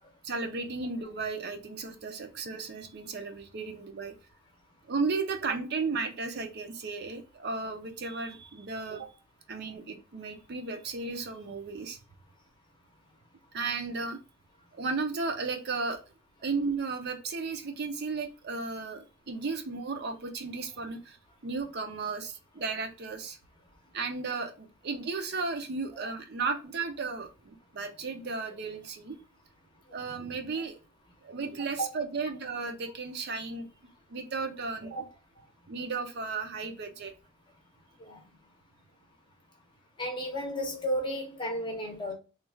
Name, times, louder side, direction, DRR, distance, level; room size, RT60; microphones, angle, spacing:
voice 1, 0.2-4.1 4.9-9.1 9.5-12.0 13.5-14.2 14.7-16.0 16.4-21.2 21.4-23.4 23.9-29.1 29.9-30.8 31.2-33.7 34.1-35.0 35.7-37.1, right 4 dB, 50° right, 0.5 m, -34 dB
voice 2, 40.0-42.1, equal, 20° left, 0.7 m, -33 dB
3.1 x 2.3 x 3.3 m
head